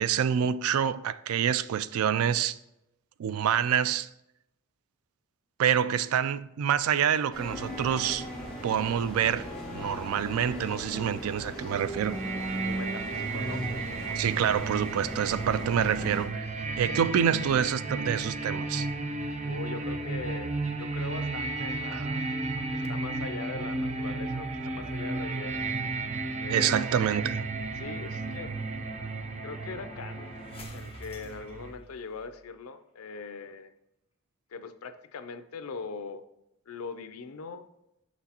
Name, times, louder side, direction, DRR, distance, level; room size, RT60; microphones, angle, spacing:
voice 1, 0.0-2.6 3.2-4.1 5.6-8.3 8.6-12.2 14.1-16.5 16.8-18.9 21.9-22.0 26.5-27.4, right 8 dB, 85° right, 0.3 m, -27 dB
sound 1, 7.3-16.3, equal, 5° left, 1.5 m, -37 dB
sound 2, 11.9-31.7, right 3 dB, 30° right, 0.5 m, -34 dB
voice 2, 12.6-13.7 19.4-22.3 22.5-25.8 26.4-26.9 27.8-28.5 29.4-30.3 30.7-33.7 34.5-36.3 36.7-37.6, left 4 dB, 85° left, 0.5 m, -41 dB
sound 3, 25.8-32.5, left 2 dB, 25° left, 0.9 m, -51 dB
6.0 x 6.0 x 2.9 m
head